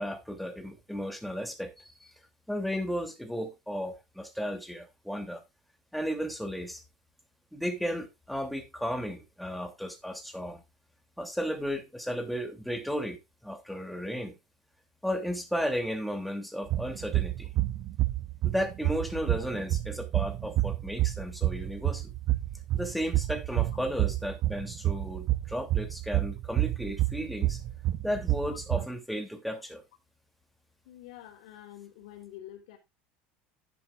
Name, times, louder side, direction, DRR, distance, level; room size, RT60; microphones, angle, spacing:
voice 1, 0.0-2.1 2.5-5.4 5.9-6.8 7.5-10.6 11.2-14.4 15.0-17.5 18.4-22.1 22.7-27.6 28.0-29.8, equal, ahead, 2.8 m, -34 dB
sound 1, 16.7-28.9, right 15 dB, 50° right, 0.7 m, -29 dB
voice 2, 30.8-32.8, left 12 dB, 85° left, 3.4 m, -47 dB
10.5 x 10.5 x 2.4 m
supercardioid pair, 130°, 4 cm